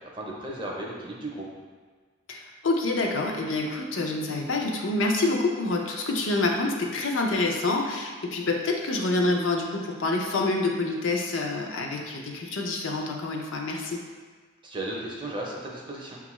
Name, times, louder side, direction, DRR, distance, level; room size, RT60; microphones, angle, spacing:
voice 1, 0.0-1.5 14.6-16.2, right 1 dB, 25° right, -2 dB, 0.6 m, -35 dB
voice 2, 2.3-14.0, left 2 dB, 80° left, 1 dB, 0.5 m, -27 dB
6.1 x 2.4 x 3.0 m, 1.5 s
head